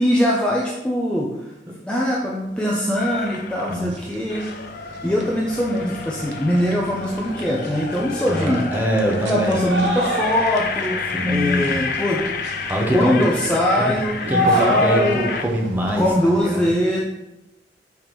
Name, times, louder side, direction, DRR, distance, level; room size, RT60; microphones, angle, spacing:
voice 1, 0.0-1.3 1.8-4.5 4.8-8.6 9.3-12.3 12.9-15.2 16.0-17.0, equal, 5° left, -4 dB, 0.6 m, -22 dB
sound 1, 3.0-3.9 4.3-15.5, left 5 dB, 55° left, 0.4 m, -31 dB
sound 2, 3.3-3.4 3.7-16.4, equal, 90° right, 0.8 m, -29 dB
voice 2, 8.2-9.6 11.1-11.8 12.7-13.3 13.8-13.9 14.3-16.7, equal, 10° right, -1 dB, 1.0 m, -23 dB
5.8 x 3.5 x 4.5 m, 0.95 s
head